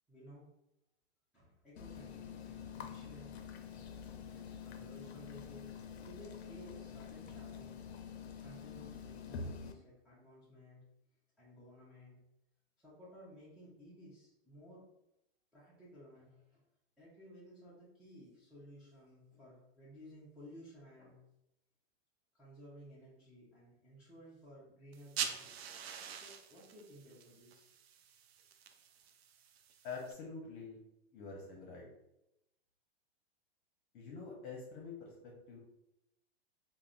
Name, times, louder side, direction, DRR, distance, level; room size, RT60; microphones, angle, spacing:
voice 1, 0.1-0.5 1.3-3.4 4.3-8.0 8.4-10.9 11.4-12.2 12.8-14.8 15.5-16.6 17.0-21.2 22.3-25.5 26.1-27.7, equal, ahead, -11 dB, 0.6 m, -56 dB
sound 1, 1.8-9.7, left 6 dB, 85° left, 0.5 m, -47 dB
sound 2, 24.9-30.1, right 8 dB, 75° right, 0.5 m, -45 dB
voice 2, 29.8-30.8 31.1-31.9 33.9-35.6, left 4 dB, 50° left, -2 dB, 0.8 m, -46 dB
3.4 x 2.1 x 2.4 m, 0.86 s
hypercardioid pair, 130°, 32 cm